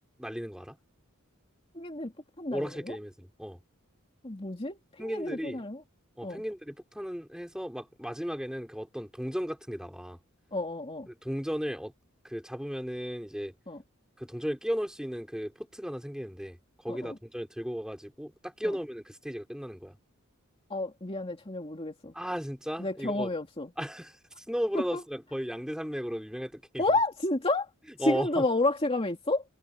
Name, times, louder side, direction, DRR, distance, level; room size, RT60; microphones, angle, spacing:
voice 1, 0.2-0.8 2.5-3.6 5.0-5.6 6.2-10.2 11.1-11.9 12.2-13.5 14.2-16.6 16.8-20.0 22.1-23.3 23.8-24.2 24.5-27.0 28.0-28.5, equal, 5° right, 4.6 m, -35 dB
voice 2, 1.7-2.1 2.4-3.0 4.2-5.8 6.2-6.4 10.5-11.1 13.7-13.8 16.9-17.2 18.6-18.7 20.7-22.1 22.8-23.7 24.9-25.0 26.8-27.7 28.0-29.4, left 2 dB, 25° left, 2.6 m, -30 dB
head